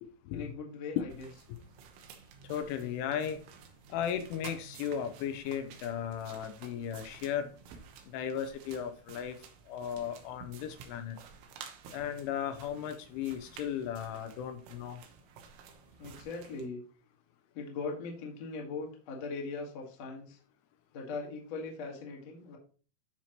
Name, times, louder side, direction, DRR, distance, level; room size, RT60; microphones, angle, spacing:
voice 1, 0.3-1.3 16.0-16.8 17.5-20.4 20.9-22.6, left 4 dB, 65° left, 0 dB, 1.6 m, -40 dB
sound 1, 1.1-16.7, right 6 dB, 75° right, 3.2 m, -52 dB
voice 2, 2.5-3.4 3.9-7.5 8.1-9.4 9.7-11.2 11.9-15.0, left 9 dB, 85° left, 8 dB, 3.0 m, -36 dB
12.5 x 4.5 x 3.0 m, 0.38 s
omnidirectional pair, 5.7 m